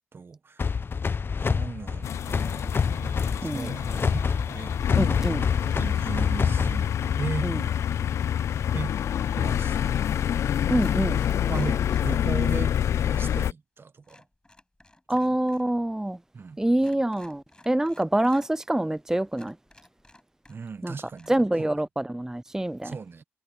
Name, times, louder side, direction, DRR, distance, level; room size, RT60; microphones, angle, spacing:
voice 1, 0.1-0.7 1.4-4.8 5.8-7.6 8.7-8.9 9.3-10.0 11.0-11.1 11.5-12.7 13.0-14.2 15.1-15.2 16.3-16.6 20.5-21.8 22.8-23.2, right 4 dB, 55° right, 1.4 m, -37 dB
sound 1, 0.6-7.4, left 5 dB, 50° left, 0.9 m, -28 dB
sound 2, 2.0-13.5, left 9 dB, 80° left, 0.4 m, -27 dB
sound 3, 3.2-4.2 4.4-6.2 7.8-9.5 10.2-10.3 10.7-12.6 12.9-13.0 14.0-15.7 16.0-16.1 16.7-18.5 18.9-19.0 19.3-20.8 21.1-21.3, left 1 dB, 20° left, 6.0 m, -55 dB
voice 2, 3.4-3.7 5.0-5.5 7.4-7.6 10.7-11.2 15.1-16.2 16.6-19.6 20.8-20.9 21.3-22.9, right 1 dB, 10° right, 0.5 m, -26 dB
cardioid pair, 50°, 5 cm